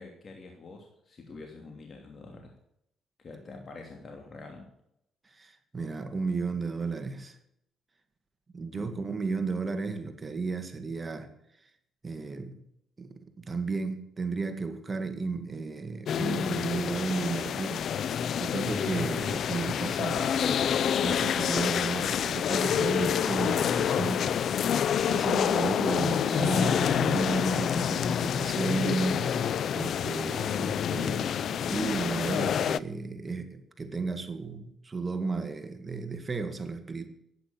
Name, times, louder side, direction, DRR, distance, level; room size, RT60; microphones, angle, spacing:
voice 1, 0.0-2.6 3.2-4.7 8.7-9.1, left 3 dB, 45° left, 2.8 m, -46 dB
voice 2, 5.3-7.4 8.5-11.3 12.0-12.6 13.0-24.3 25.1-37.1, right 4 dB, 30° right, 1.9 m, -34 dB
sound 1, 16.1-32.8, left 8 dB, 65° left, 0.5 m, -28 dB
11.5 x 10.0 x 8.5 m
cardioid pair, 90°, 0 cm